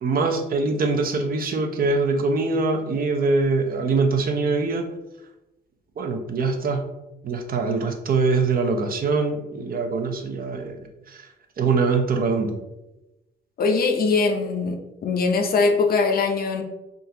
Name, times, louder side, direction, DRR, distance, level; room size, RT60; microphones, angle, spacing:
voice 1, 0.0-4.9 6.0-6.9 7.2-11.3 11.6-12.6, right 4 dB, 45° right, 5 dB, 0.5 m, -23 dB
voice 2, 13.6-14.8 15.0-16.6, left 4 dB, 50° left, 4 dB, 0.5 m, -21 dB
3.6 x 2.4 x 2.8 m, 0.96 s
cardioid pair, 90°, 20 cm